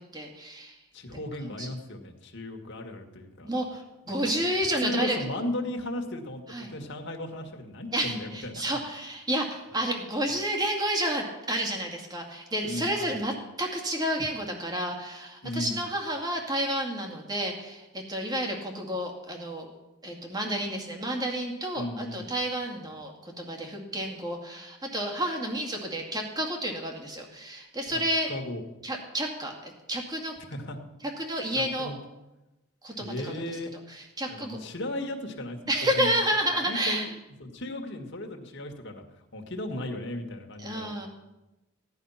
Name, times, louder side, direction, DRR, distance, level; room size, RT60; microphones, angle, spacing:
voice 1, 0.0-0.7 1.6-1.7 3.4-5.2 6.5-6.7 7.9-19.7 20.0-28.3 28.8-30.3 31.2-31.9 32.8-33.3 33.9-34.6 35.7-37.0 40.6-41.1, right 1 dB, 20° right, 1 dB, 2.3 m, -30 dB
voice 2, 0.9-3.5 4.1-4.3 4.8-8.6 12.6-13.2 15.4-15.8 21.8-22.3 27.9-28.6 30.4-30.8 31.5-32.0 33.0-33.7 34.3-36.1 36.6-37.1 37.4-39.0 39.3-41.1, left 1 dB, 55° left, 3 dB, 2.0 m, -36 dB
16.5 x 11.0 x 5.8 m, 1.0 s
head